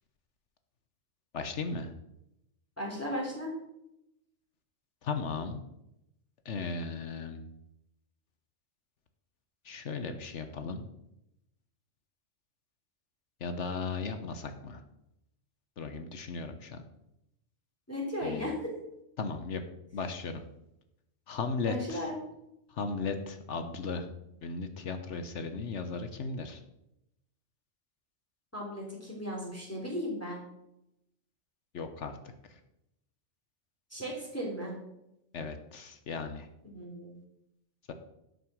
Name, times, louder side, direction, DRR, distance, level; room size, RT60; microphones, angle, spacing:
voice 1, 1.3-1.9 5.0-5.6 6.4-7.4 9.6-10.8 13.4-14.8 15.8-16.8 18.2-18.5 19.2-19.6 19.9-20.4 21.3-22.1 22.7-24.1 24.4-26.6 31.7-32.2 32.5-32.6 35.3-36.5, left 4 dB, 70° left, 8 dB, 1.2 m, -36 dB
voice 2, 2.8-3.5 17.9-18.7 21.7-22.2 28.5-30.4 33.9-34.7 36.6-37.1, equal, 10° left, -3 dB, 3.5 m, -36 dB
12.0 x 6.6 x 6.3 m, 0.85 s
omnidirectional pair, 1.3 m